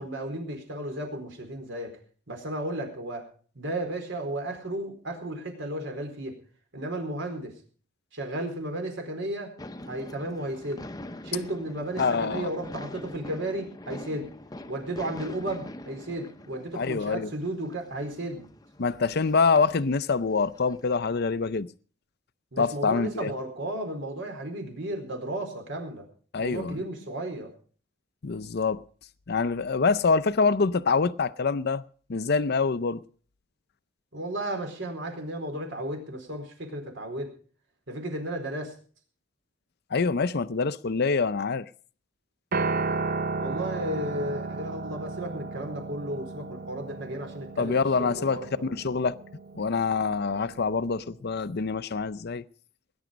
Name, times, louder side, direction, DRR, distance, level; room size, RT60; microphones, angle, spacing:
voice 1, 0.0-1.9 2.3-3.3 3.5-6.3 6.7-7.5 8.1-9.5 9.9-10.9 11.2-14.3 14.7-18.5 22.5-26.1 26.4-27.5 34.1-37.3 37.9-38.7 43.4-48.6, right 1 dB, 70° right, 4.3 m, -34 dB
sound 1, 9.6-21.0, left 1 dB, 20° left, 0.8 m, -44 dB
voice 2, 12.0-12.5 16.7-17.3 18.8-21.7 22.6-23.3 26.3-26.8 28.2-28.8 29.3-31.8 32.1-33.0 39.9-41.7 47.6-49.1 49.5-52.4, left 4 dB, 55° left, 0.6 m, -25 dB
Piano, 42.5-50.8, right 3 dB, 45° right, 0.7 m, -34 dB
19.5 x 10.5 x 5.2 m
head